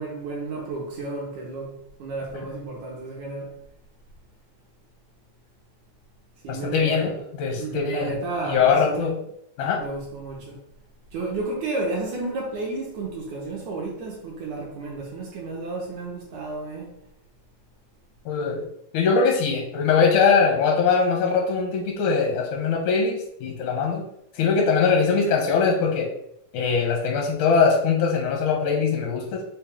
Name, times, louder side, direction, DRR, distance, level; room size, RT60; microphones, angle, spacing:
voice 1, 0.0-3.5 6.4-7.1 7.6-9.1 9.8-10.6 11.1-17.0, right 3 dB, 80° right, 1.7 m, -32 dB
voice 2, 6.5-8.2 8.4-9.2 9.6-9.8 18.2-18.7 18.9-24.0 24.3-26.1 26.5-29.4, left 5 dB, 80° left, 1.8 m, -22 dB
5.5 x 2.3 x 3.4 m
omnidirectional pair, 4.1 m